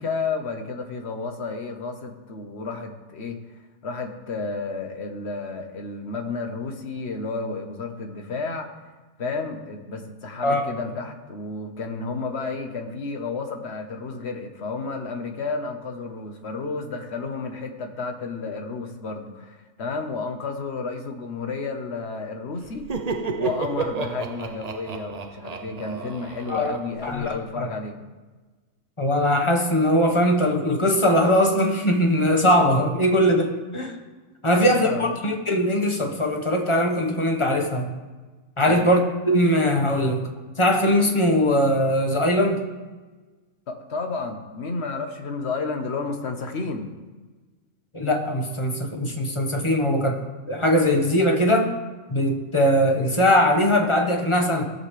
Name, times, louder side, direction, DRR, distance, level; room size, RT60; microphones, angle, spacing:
voice 1, 0.0-3.4 3.8-8.7 9.2-22.9 23.4-28.0 34.5-35.1 38.6-38.9 43.7-46.9, left 4 dB, 55° left, 4 dB, 1.4 m, -31 dB
Laughter, 22.6-27.3, right 4 dB, 45° right, 0.5 m, -31 dB
voice 2, 27.0-27.7 29.0-33.9 34.4-37.9 38.6-40.2 40.6-42.6 47.9-50.2 50.5-51.8 52.1-54.6, equal, 25° left, 3 dB, 1.2 m, -21 dB
18.5 x 6.8 x 3.3 m, 1.3 s
omnidirectional pair, 1.4 m